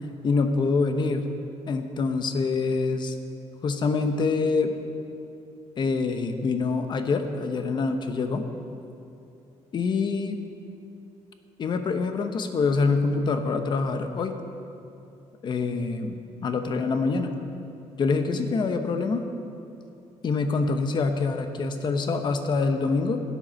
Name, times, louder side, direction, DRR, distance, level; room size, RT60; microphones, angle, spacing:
voice 1, 0.2-1.2 1.7-3.2 3.6-4.7 5.8-8.5 9.7-10.4 11.6-14.3 15.4-17.4 18.0-19.2 20.2-23.2, left 4 dB, 40° left, 7 dB, 0.9 m, -25 dB
13.5 x 10.0 x 6.4 m, 2.7 s
cardioid pair, 170°, 12 cm